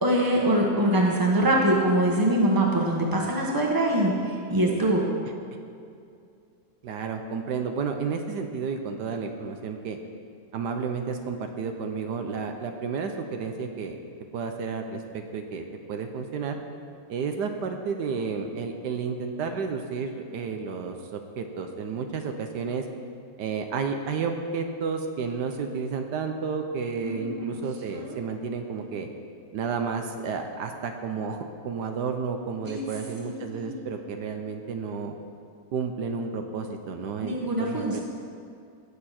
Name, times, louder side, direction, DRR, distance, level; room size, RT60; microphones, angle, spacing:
voice 1, 0.0-5.0 27.0-27.6 27.9-28.2 32.7-32.8 33.2-33.9 37.2-38.0, right 1 dB, 15° right, -2 dB, 1.4 m, -24 dB
voice 2, 6.8-10.0 10.5-14.0 14.3-15.6 15.9-16.6 17.1-22.8 23.4-29.1 29.5-35.1 35.7-38.0, right 5 dB, 80° right, 5 dB, 1.4 m, -31 dB
18.0 x 6.9 x 4.3 m, 2.4 s
omnidirectional pair, 1.8 m